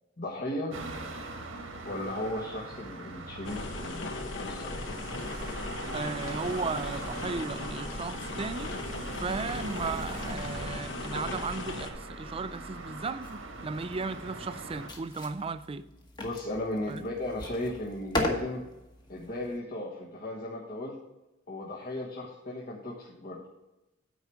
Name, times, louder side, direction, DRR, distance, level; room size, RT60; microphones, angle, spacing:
voice 1, 0.2-0.8 1.8-4.7 16.2-18.6 19.1-21.0 21.5-23.4, left 1 dB, 50° left, 1.4 m, -36 dB
sound 1, 0.7-14.9, right 2 dB, 85° right, 1.5 m, -41 dB
sound 2, 3.4-11.9, left 2 dB, 65° left, 0.9 m, -37 dB
voice 2, 5.9-8.7 9.2-15.8 16.9-17.1, right 4 dB, 30° right, 0.4 m, -35 dB
sound 3, 13.2-19.6, left 1 dB, 20° left, 1.2 m, -38 dB
9.3 x 4.7 x 7.1 m
head